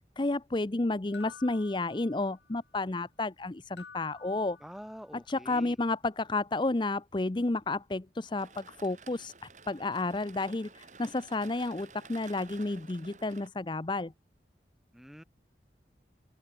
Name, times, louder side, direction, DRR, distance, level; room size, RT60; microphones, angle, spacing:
voice 1, 0.2-4.6 5.1-9.3 9.7-14.1, left 2 dB, 25° left, 0.6 m, -31 dB
sound 1, 1.1-2.6 3.8-5.2, left 5 dB, 75° left, 2.2 m, -52 dB
voice 2, 4.6-5.8 14.9-15.2, equal, ahead, 2.0 m, -46 dB
sound 2, 8.4-13.5, right 4 dB, 40° right, 7.5 m, -52 dB
head